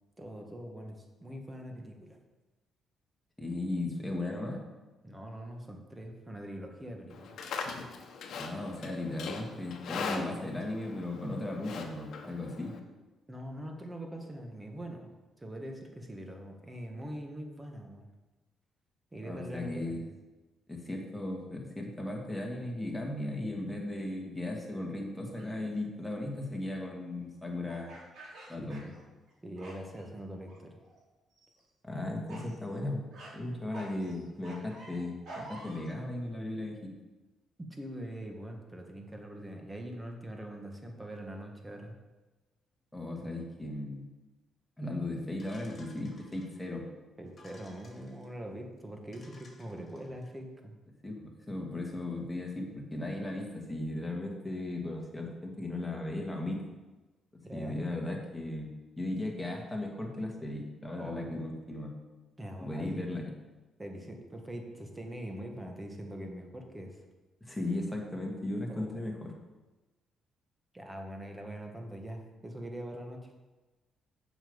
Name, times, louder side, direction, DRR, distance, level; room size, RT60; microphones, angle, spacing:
voice 1, 0.2-2.2 5.0-7.4 13.3-15.1 15.4-18.1 19.1-20.0 25.3-25.4 28.6-28.9 29.4-30.8 37.7-42.0 47.2-50.8 57.4-57.8 61.0-61.4 62.4-63.1 63.8-67.0 68.7-69.0 70.7-73.3, right 1 dB, 15° right, 2 dB, 1.6 m, -43 dB
voice 2, 3.4-4.6 8.4-12.8 19.3-20.0 20.7-27.9 28.5-28.8 31.8-33.1 33.3-36.9 42.9-44.1 44.8-46.9 51.0-56.6 57.5-58.7 59.0-61.9 62.6-63.3 67.4-69.3, left 2 dB, 5° left, -1 dB, 2.0 m, -36 dB
Livestock farm animals working animals, 7.1-12.8, left 5 dB, 70° left, 1.1 m, -41 dB
sound 1, 25.3-25.6 27.7-29.3 29.6-30.1 30.5-31.0 31.3-31.6 32.3-32.6 33.1-33.3 33.7-35.9, right 2 dB, 70° right, 3.5 m, -48 dB
sound 2, 45.4-46.7 47.3-48.3 48.8-48.9 49.1-50.3, left 2 dB, 35° left, 2.2 m, -58 dB
7.1 x 5.6 x 7.1 m, 1.2 s
cardioid pair, 90°, 0 cm